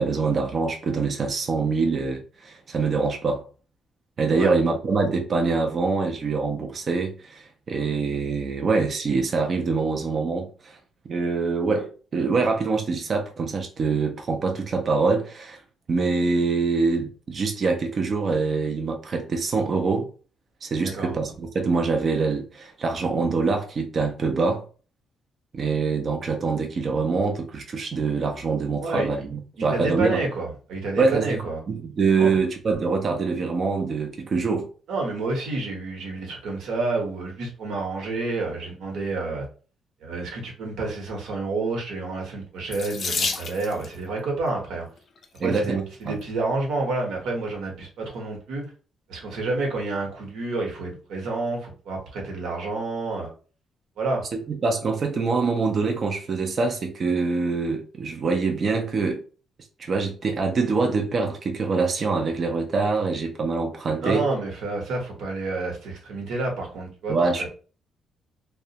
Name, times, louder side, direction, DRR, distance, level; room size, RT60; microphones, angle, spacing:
voice 1, 0.0-3.4 4.2-10.8 11.1-15.6 15.9-20.1 20.6-24.6 25.5-30.2 31.0-34.7 45.4-46.1 54.5-59.2 59.8-64.2 67.1-67.5, right 4 dB, 35° right, 0.4 m, -24 dB
voice 2, 29.7-31.6 32.2-32.4 34.9-39.4 40.0-44.9 45.4-48.7 49.1-53.3 54.0-54.2 64.0-67.5, right 3 dB, 70° right, 0.9 m, -29 dB
Water tap faucet / Sink (filling or washing), 42.7-44.0 45.0-45.4 46.1-46.2 46.5-46.6, left 4 dB, 35° left, 0.4 m, -30 dB
2.3 x 2.1 x 2.7 m
cardioid pair, 170°, 0 cm